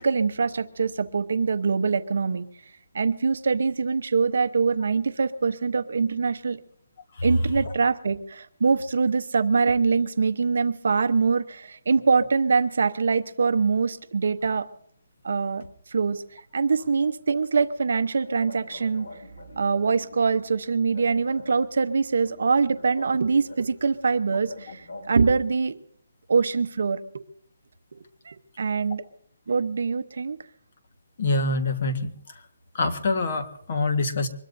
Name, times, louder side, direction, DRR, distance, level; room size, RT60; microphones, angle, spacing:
voice 1, 0.0-2.5 2.9-6.6 7.2-14.7 15.2-15.6 15.9-19.1 19.6-25.8 26.3-27.2 27.9-29.0 29.5-30.4, right 5 dB, 55° right, 11 dB, 0.9 m, -24 dB
sound 1, 17.5-25.2, left 2 dB, 70° left, 6.5 m, -46 dB
voice 2, 31.2-32.4 32.7-34.3, left 2 dB, 35° left, 7 dB, 1.4 m, -25 dB
24.0 x 21.0 x 2.7 m, 0.67 s
hypercardioid pair, 180°, 0 cm